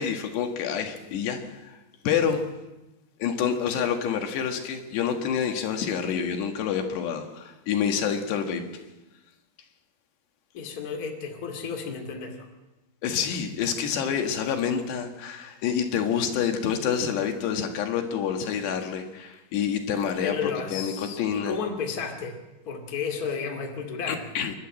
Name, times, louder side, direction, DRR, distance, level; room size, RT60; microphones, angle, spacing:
voice 1, 0.0-1.8 2.0-2.4 3.2-8.6 13.0-21.6 24.1-24.5, left 7 dB, 85° left, 4 dB, 3.9 m, -27 dB
voice 2, 10.5-12.5 20.2-22.4 22.7-24.2, left 5 dB, 30° left, 3 dB, 2.1 m, -32 dB
28.0 x 12.0 x 7.7 m, 1.0 s
omnidirectional pair, 4.8 m